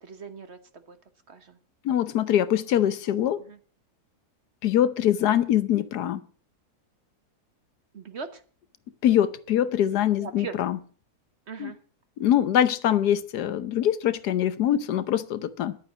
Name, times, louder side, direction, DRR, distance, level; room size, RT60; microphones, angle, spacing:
voice 1, 0.0-1.0 1.3-1.6 3.4-3.6 7.9-8.4 10.2-10.5 11.5-11.8, right 5 dB, 45° right, 1.2 m, -40 dB
voice 2, 1.8-3.4 4.6-6.2 9.0-10.8 11.6-11.7 12.2-15.8, left 11 dB, 85° left, 1.4 m, -23 dB
11.5 x 8.8 x 7.1 m
omnidirectional pair, 1.7 m